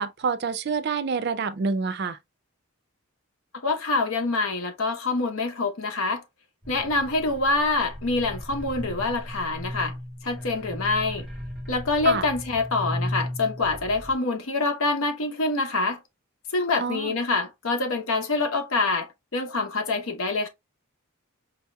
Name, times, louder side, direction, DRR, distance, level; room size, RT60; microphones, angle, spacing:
voice 1, 0.0-2.2 12.0-12.2 16.8-17.1, right 5 dB, 50° right, 0.4 m, -27 dB
voice 2, 3.6-6.2 6.7-9.9 10.2-11.2 11.7-16.0 16.5-20.5, left 3 dB, 75° left, 0.9 m, -26 dB
sound 1, 6.6-14.2, left 1 dB, ahead, 0.9 m, -36 dB
5.2 x 2.8 x 2.2 m
head